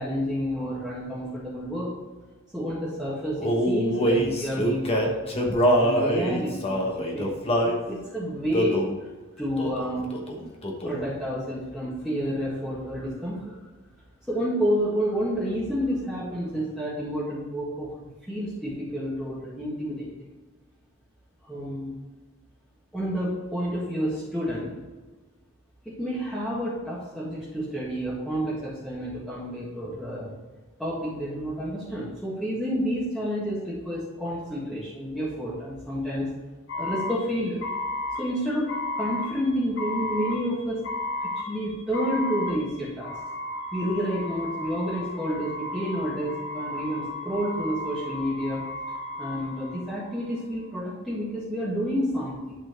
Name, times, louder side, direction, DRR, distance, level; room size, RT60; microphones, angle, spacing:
voice 1, 0.0-1.9 2.5-8.8 9.4-10.1 10.8-13.5 14.3-17.9 18.3-20.3 21.5-21.9 22.9-24.7 25.8-30.3 30.8-36.3 36.7-37.7 38.2-40.8 41.2-43.1 43.7-48.6 49.2-52.6, equal, ahead, -9 dB, 1.6 m, -30 dB
Male singing, 3.4-7.8 8.5-8.9 9.6-9.9 10.1-11.1, equal, 25° left, 1.1 m, -24 dB
sound 1, 36.7-50.3, left 2 dB, 60° left, 2.4 m, -34 dB
11.0 x 4.4 x 4.5 m, 1.3 s
head